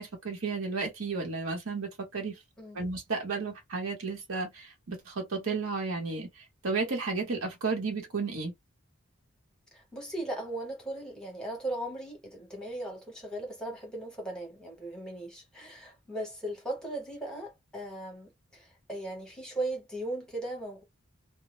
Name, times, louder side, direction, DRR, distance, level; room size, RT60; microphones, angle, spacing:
voice 1, 0.0-2.4 2.7-8.5, right 4 dB, 70° right, 1.0 m, -33 dB
voice 2, 2.6-2.9 9.7-20.8, right 1 dB, 5° left, 0.8 m, -38 dB
2.1 x 2.1 x 2.9 m
head